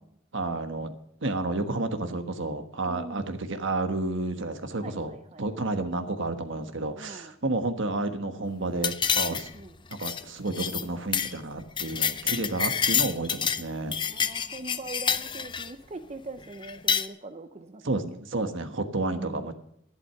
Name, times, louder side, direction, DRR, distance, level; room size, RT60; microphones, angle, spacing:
voice 1, 0.3-0.9 1.2-9.5 9.9-14.0 17.8-19.5, right 2 dB, 60° right, 8 dB, 1.4 m, -31 dB
voice 2, 2.9-3.3 4.8-5.7 6.9-7.3 9.5-9.8 13.0-13.3 14.0-18.0 18.3-18.5 19.0-19.5, right 2 dB, 30° right, 8 dB, 0.6 m, -42 dB
sound 1, 8.8-9.6 9.9-10.2 10.5-10.8 11.1-11.3 11.6-13.6 13.9-15.7 16.6-17.1, left 7 dB, 25° left, 0.5 m, -27 dB
11.5 x 11.0 x 5.8 m, 0.74 s
head